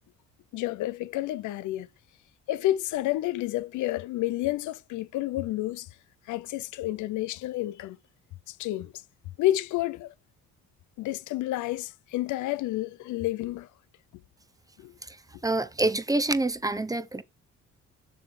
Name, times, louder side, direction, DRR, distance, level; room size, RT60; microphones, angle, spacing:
voice 1, 0.5-1.9 2.5-5.9 6.3-8.0 8.5-8.9 9.4-10.1 11.0-13.7 14.8-14.9, left 15 dB, 80° left, 0.5 m, -30 dB
voice 2, 15.4-17.2, right 2 dB, 10° right, 0.7 m, -27 dB
7.1 x 6.7 x 3.2 m
cardioid pair, 90°, 30 cm